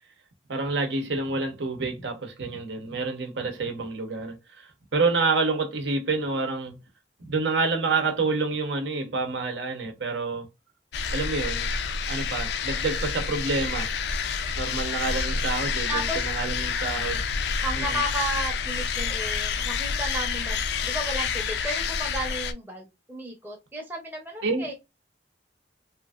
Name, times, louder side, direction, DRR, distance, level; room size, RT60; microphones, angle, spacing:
voice 1, 0.5-6.8 7.2-10.5 11.1-11.7 12.1-13.9 14.6-17.2 17.8-18.0 24.4-24.7, right 3 dB, 80° right, 0.8 m, -28 dB
sound 1, 10.9-22.5, left 5 dB, 65° left, 0.4 m, -28 dB
voice 2, 14.8-15.2 15.9-16.3 17.6-24.7, right 1 dB, 10° right, 0.6 m, -34 dB
2.9 x 2.5 x 2.3 m
head